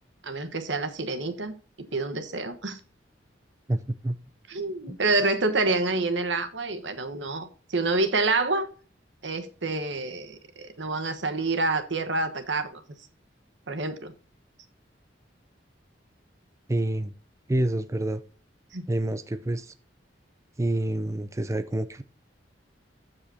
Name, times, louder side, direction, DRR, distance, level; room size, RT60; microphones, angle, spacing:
voice 1, 0.2-1.6 1.9-2.8 4.5-8.7 9.2-12.8 13.7-14.1 18.7-18.8, right 3 dB, 75° right, 1.3 m, -27 dB
voice 2, 3.7-4.2 4.9-5.0 16.7-17.1 17.5-18.2 18.9-19.7 20.6-22.0, right 1 dB, 15° right, 0.4 m, -27 dB
13.5 x 4.9 x 2.8 m
head